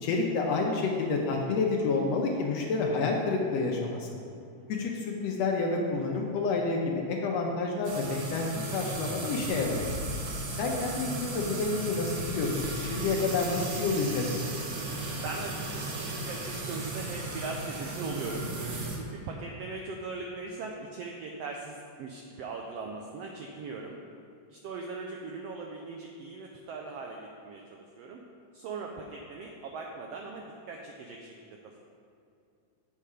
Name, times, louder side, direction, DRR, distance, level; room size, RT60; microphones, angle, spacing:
voice 1, 0.0-4.1 4.7-9.9 10.5-14.4, left 3 dB, 75° left, 0 dB, 1.7 m, -29 dB
sound 1, 7.8-19.0, right 2 dB, 65° right, 1.2 m, -35 dB
voice 2, 15.2-24.0 24.5-28.2 28.5-31.8, right 3 dB, 90° right, 1 dB, 1.4 m, -40 dB
8.4 x 5.5 x 4.9 m, 2.5 s
omnidirectional pair, 3.4 m